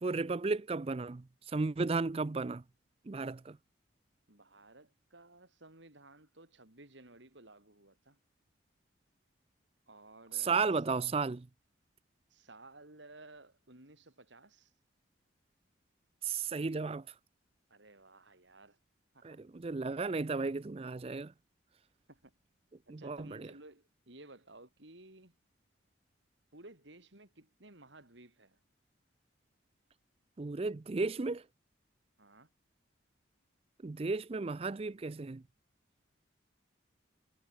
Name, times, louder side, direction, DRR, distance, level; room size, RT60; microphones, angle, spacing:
voice 1, 0.0-2.6 3.1-3.6 10.3-11.5 16.2-17.2 19.2-21.3 22.9-23.5 30.4-31.5 33.8-35.4, right 4 dB, 30° right, 0.4 m, -34 dB
voice 2, 4.3-8.2 9.9-10.7 12.3-14.7 17.7-18.8 19.1-19.4 22.1-22.3 22.9-25.4 26.5-28.6 32.2-32.5, right 2 dB, 70° right, 4.2 m, -56 dB
head